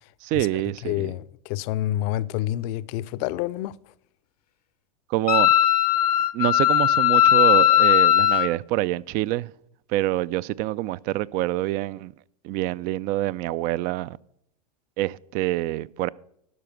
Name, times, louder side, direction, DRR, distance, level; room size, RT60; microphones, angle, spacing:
voice 1, 0.2-1.1 5.1-5.5 6.3-9.5 9.9-12.1 12.4-14.2 15.0-16.1, right 16 dB, 45° right, 0.4 m, -26 dB
voice 2, 0.8-3.7, left 14 dB, 55° left, 0.5 m, -28 dB
Wind instrument woodwind instrument, 5.3-8.5, left 12 dB, 85° left, 0.9 m, -18 dB
12.0 x 5.0 x 7.8 m
hypercardioid pair, 100°, 19 cm